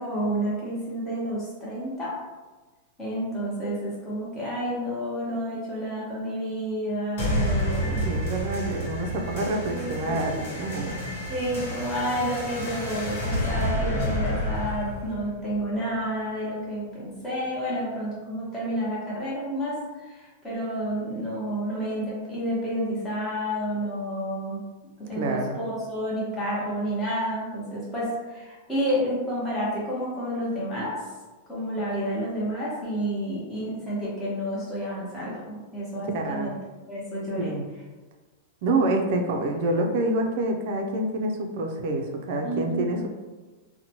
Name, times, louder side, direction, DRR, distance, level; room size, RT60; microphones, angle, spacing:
voice 1, 0.0-2.1 3.0-8.0 9.6-10.5 11.3-19.8 20.1-24.6 25.1-30.9 31.5-36.6 36.9-37.5 42.4-42.9, equal, 10° left, -8 dB, 1.0 m, -30 dB
sound 1, 7.2-16.2, equal, 60° left, 1.1 m, -30 dB
voice 2, 8.0-11.0 25.1-25.6 36.0-36.6 37.4-37.7 38.6-43.1, right 2 dB, 50° right, 3 dB, 0.4 m, -27 dB
2.8 x 2.1 x 2.8 m, 1.2 s
supercardioid pair, 160°, 0 cm